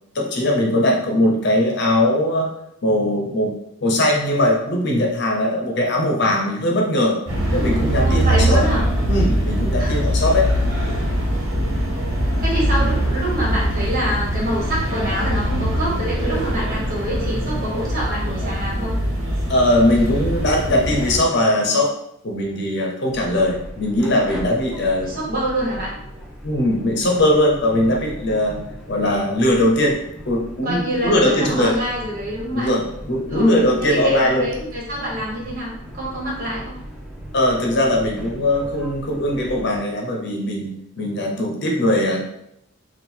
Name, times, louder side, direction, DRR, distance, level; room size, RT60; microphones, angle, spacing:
voice 1, 0.1-2.5 2.8-3.6 3.8-7.2 7.5-8.6 9.1-10.5 19.5-21.9 22.2-25.1 26.4-28.6 28.9-30.0 30.3-31.8 32.5-34.5 37.3-42.2, left 1 dB, 55° left, 0 dB, 0.8 m, -20 dB
sound 1, 7.3-21.2, equal, 80° right, 1.1 m, -22 dB
voice 2, 8.0-8.8 9.8-10.0 12.4-18.9 25.0-25.9 30.6-32.7 33.3-33.5 33.8-36.8, equal, 45° right, -5 dB, 1.6 m, -26 dB
sound 2, 23.1-39.8, equal, 5° right, 0.8 m, -38 dB
3.7 x 2.4 x 4.4 m, 0.78 s
head